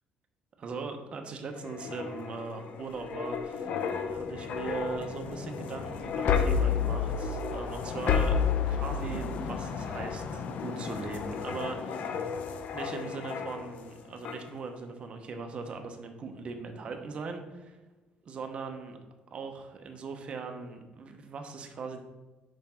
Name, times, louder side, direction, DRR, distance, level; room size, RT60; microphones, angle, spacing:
voice 1, 0.6-3.7 4.1-8.4 8.7-12.3 12.7-17.8 18.3-19.0 19.3-22.0, right 4 dB, 40° right, 5 dB, 0.9 m, -39 dB
sound 1, 1.6-13.9 14.2-14.5, left 6 dB, 60° left, 0.7 m, -32 dB
5.8 x 5.2 x 4.4 m, 1.2 s
cardioid pair, 130°, 3 cm